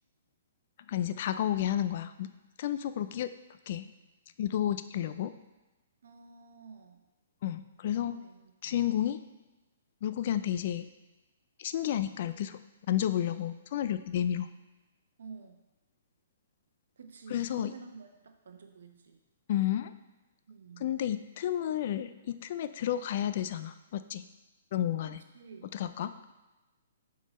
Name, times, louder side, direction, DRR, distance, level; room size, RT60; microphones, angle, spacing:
voice 1, 0.9-2.3 2.6-3.3 3.7-3.9 4.4-5.3 7.4-8.2 8.6-9.2 10.0-10.9 11.6-12.6 12.9-14.5 17.3-17.7 19.5-19.9 20.8-24.2 24.7-25.2 25.7-26.3, left 11 dB, 50° left, 12 dB, 0.4 m, -31 dB
voice 2, 6.0-7.0 8.0-8.7 15.2-15.6 17.0-19.2 20.5-20.9 25.0-25.7, right 5 dB, 75° right, 5 dB, 0.9 m, -50 dB
8.2 x 3.8 x 4.2 m, 1.1 s
hypercardioid pair, 140°, 0 cm